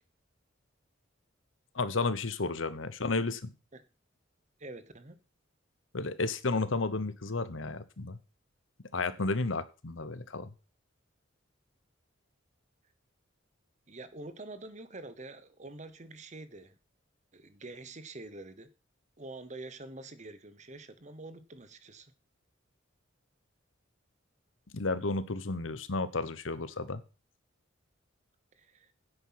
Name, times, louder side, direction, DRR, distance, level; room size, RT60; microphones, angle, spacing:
voice 1, 1.7-3.5 5.9-8.2 8.9-10.5 24.7-27.0, left 3 dB, 75° left, 1.1 m, -32 dB
voice 2, 4.6-5.2 13.9-16.8 17.3-18.7 19.2-22.1 28.6-28.9, right 2 dB, 35° right, 1.1 m, -46 dB
10.0 x 8.1 x 5.8 m
head